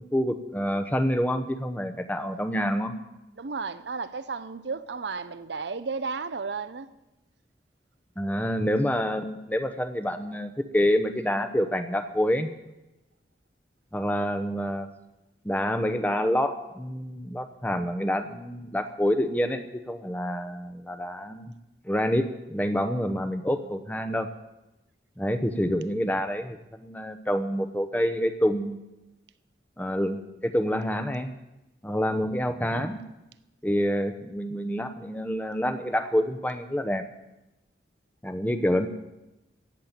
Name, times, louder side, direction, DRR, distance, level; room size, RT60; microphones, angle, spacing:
voice 1, 0.0-2.9 8.2-12.5 13.9-14.9 15.4-21.5 21.8-24.3 25.2-28.8 29.8-31.3 31.8-33.0 33.6-37.0 38.2-38.9, equal, 10° left, 0.8 m, -27 dB
voice 2, 3.4-6.9, right 4 dB, 75° right, 0.7 m, -33 dB
16.0 x 7.5 x 8.9 m
head